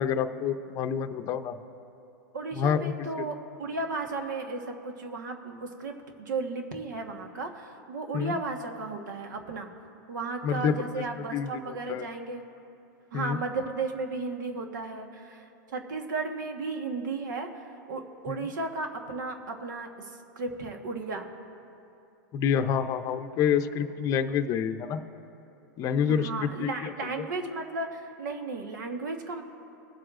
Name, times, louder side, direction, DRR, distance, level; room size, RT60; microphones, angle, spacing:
voice 1, 0.0-1.6 2.5-2.9 8.1-8.3 10.4-10.8 11.3-12.0 13.1-13.4 18.3-18.5 22.3-25.0 25.8-26.9, left 7 dB, 35° left, 9 dB, 0.6 m, -28 dB
voice 2, 2.3-9.7 10.1-12.4 13.1-21.3 26.1-29.4, right 3 dB, 85° right, 4 dB, 1.3 m, -34 dB
21.5 x 7.8 x 2.5 m, 2.7 s
supercardioid pair, 135°, 10 cm